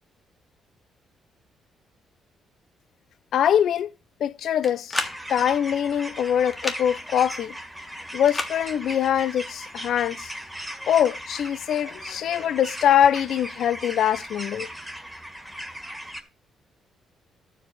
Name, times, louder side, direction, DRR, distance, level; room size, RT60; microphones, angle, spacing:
voice 1, 3.3-3.9 4.2-5.0 5.3-7.5 8.1-10.3 10.9-14.7, left 9 dB, 70° left, 0.5 m, -23 dB
sound 1, 4.6-5.2 6.5-6.8 8.3-8.5, left 2 dB, 15° left, 1.5 m, -29 dB
sound 2, 4.9-16.2, equal, 5° right, 1.7 m, -38 dB
12.5 x 5.0 x 4.6 m
cardioid pair, 90°, 0 cm